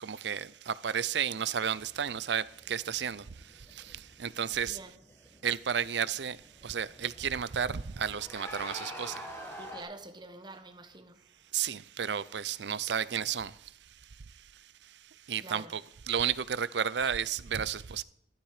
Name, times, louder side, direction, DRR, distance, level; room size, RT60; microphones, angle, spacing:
voice 1, 0.0-3.2 3.9-4.8 5.4-6.4 6.6-9.2 11.5-13.5 15.3-15.8 16.1-18.0, right 8 dB, 70° right, 0.6 m, -32 dB
sound 1, 1.8-9.8, equal, 15° left, 1.9 m, -48 dB
voice 2, 4.6-5.0 9.6-11.2 15.4-15.7 17.0-17.1, right 2 dB, 25° right, 1.3 m, -47 dB
13.0 x 12.0 x 5.0 m
head